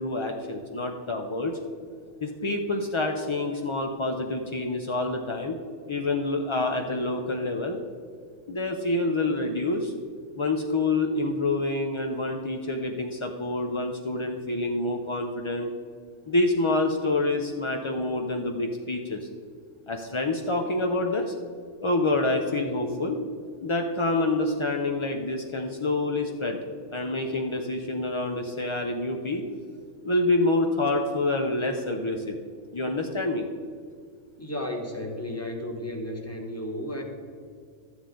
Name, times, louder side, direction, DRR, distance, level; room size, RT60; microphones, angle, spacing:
voice 1, 0.0-1.6 2.2-5.6 5.9-7.8 8.5-9.9 10.4-15.7 16.3-19.3 19.9-21.3 21.8-23.2 23.6-26.6 26.9-29.4 30.0-32.4 32.7-33.5, left 2 dB, 50° left, 3 dB, 0.3 m, -27 dB
voice 2, 34.4-37.0, left 1 dB, 10° left, 2 dB, 1.2 m, -33 dB
12.5 x 9.7 x 3.8 m, 2.1 s
omnidirectional pair, 1.6 m